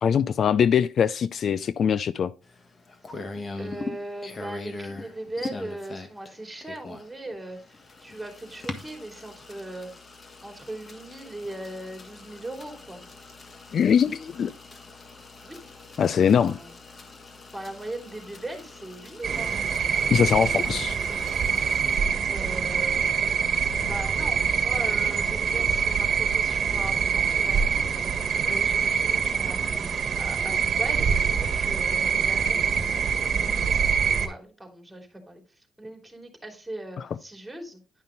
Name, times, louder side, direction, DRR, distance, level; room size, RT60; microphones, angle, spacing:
voice 1, 0.0-2.3 13.7-14.5 16.0-16.6 20.1-21.0, left 7 dB, 55° left, 0.4 m, -22 dB
sound 1, 2.4-22.0, left 3 dB, 35° left, 1.5 m, -42 dB
voice 2, 3.6-9.9 10.4-13.0 15.4-15.6 16.4-16.7 17.5-19.5 20.1-20.6 22.3-23.0 23.8-29.6 30.2-38.0, right 1 dB, 5° right, 3.2 m, -39 dB
sound 2, 19.2-34.3, right 6 dB, 50° right, 1.5 m, -25 dB
11.0 x 5.5 x 3.9 m
cardioid pair, 90°, 0 cm